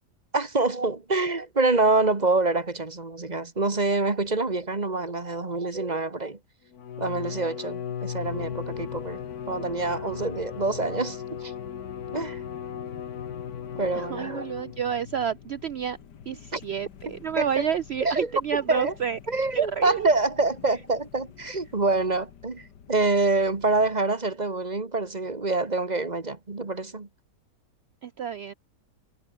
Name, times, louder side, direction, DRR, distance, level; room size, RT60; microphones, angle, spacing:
voice 1, 0.3-6.4 7.0-9.2 9.5-11.5 12.1-12.4 13.8-14.5 16.5-16.6 17.4-17.6 18.1-18.3 18.7-18.9 19.3-27.1, right 3 dB, 25° right, 1.7 m, -26 dB
Bowed string instrument, 6.7-15.0, left 8 dB, 65° left, 1.7 m, -37 dB
sound 1, 8.2-24.0, left 8 dB, 85° left, 2.1 m, -47 dB
voice 2, 13.7-16.0 16.3-19.2 19.5-20.1 20.7-20.8 28.0-28.5, right 8 dB, 85° right, 0.5 m, -30 dB
omnidirectional pair, 1.8 m